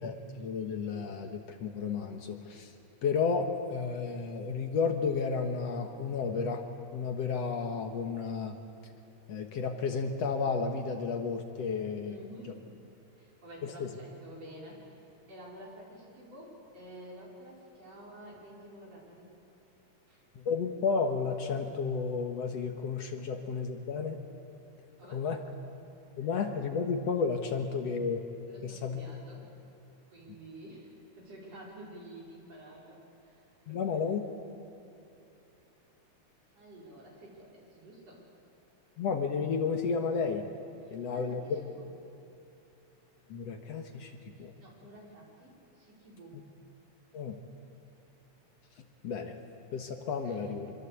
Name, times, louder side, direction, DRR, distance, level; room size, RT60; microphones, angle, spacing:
voice 1, 0.0-2.7 3.0-6.6 6.9-8.6 9.3-12.2 13.6-13.9 20.4-24.2 25.1-25.4 26.2-28.2 28.6-29.0 33.7-34.2 39.0-40.5 40.9-41.6 43.3-44.5 47.1-47.4 49.0-49.4 49.7-50.7, left 5 dB, 65° left, 5 dB, 2.3 m, -32 dB
voice 2, 12.1-12.6 13.2-15.0 15.3-19.3 20.1-20.2 25.0-25.2 26.2-26.3 28.5-29.5 30.1-33.4 33.7-34.0 36.5-38.2 40.8-41.9 44.4-46.4 50.2-50.4, right 1 dB, 55° right, -3 dB, 6.5 m, -50 dB
26.0 x 23.0 x 8.4 m, 2.8 s
omnidirectional pair, 3.4 m